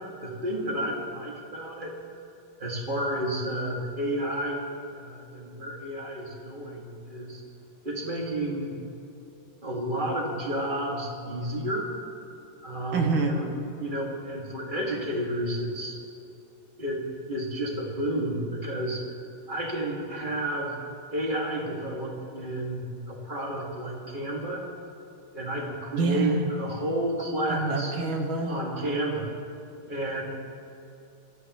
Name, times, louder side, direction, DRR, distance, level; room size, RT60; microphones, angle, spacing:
voice 1, 0.2-1.9 2.6-4.6 4.9-7.4 7.8-8.7 9.6-11.9 12.6-13.5 13.8-16.0 16.8-17.0 17.3-19.0 19.5-20.7 21.1-24.6 25.3-27.9 28.5-29.3 29.9-30.2, right 1 dB, 25° right, -3 dB, 2.3 m, -31 dB
voice 2, 12.9-13.4 25.9-26.4 27.5-28.6, right 3 dB, 70° right, 3 dB, 2.2 m, -26 dB
26.0 x 13.0 x 3.2 m, 2.7 s
omnidirectional pair, 2.3 m